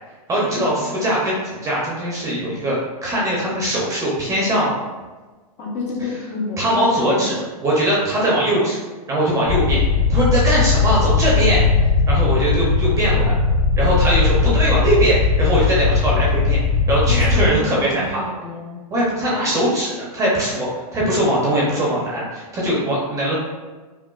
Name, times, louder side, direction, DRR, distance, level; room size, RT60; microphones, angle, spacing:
voice 1, 0.3-4.7 6.6-8.8 9.1-9.8 10.1-11.6 12.1-13.3 13.8-16.6 16.9-18.2 18.9-23.4, right 1 dB, 15° right, -5 dB, 0.8 m, -21 dB
voice 2, 5.6-7.4 17.0-18.8, left 2 dB, 35° left, -4 dB, 1.0 m, -28 dB
sound 1, 9.5-17.5, left 4 dB, 70° left, 1.0 m, -18 dB
5.0 x 2.4 x 2.4 m, 1.3 s
hypercardioid pair, 145°, 19 cm